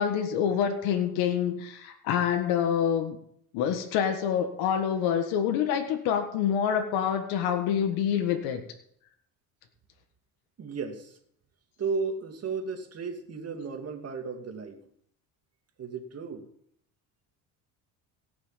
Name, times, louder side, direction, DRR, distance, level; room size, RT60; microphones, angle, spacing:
voice 1, 0.0-3.2 3.5-8.6, left 8 dB, 90° left, 5 dB, 1.7 m, -26 dB
voice 2, 10.6-11.2 11.8-14.8 15.8-16.5, right 5 dB, 40° right, 6 dB, 2.3 m, -34 dB
17.5 x 6.2 x 7.3 m, 0.70 s
cardioid pair, 105°, 38 cm